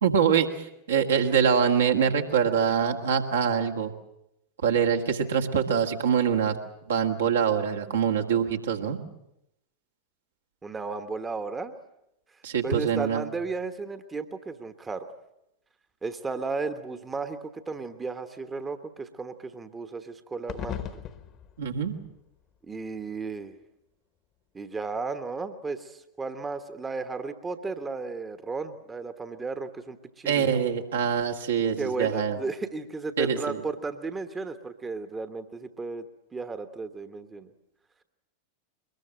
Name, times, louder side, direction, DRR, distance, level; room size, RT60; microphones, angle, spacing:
voice 1, 0.0-3.9 4.6-6.6 6.9-9.0 12.4-13.2 21.6-21.9 30.3-32.4 33.2-33.6, right 7 dB, 65° right, 2 dB, 1.9 m, -24 dB
voice 2, 10.6-11.7 12.6-15.1 16.0-21.0 22.6-23.5 24.5-30.6 31.8-36.1 36.3-37.5, right 4 dB, 15° right, 9 dB, 1.2 m, -34 dB
sound 1, 20.5-23.3, left 9 dB, 35° left, 1.4 m, -40 dB
23.0 x 21.0 x 7.6 m, 0.83 s
figure-of-eight pair, 90°, 0 cm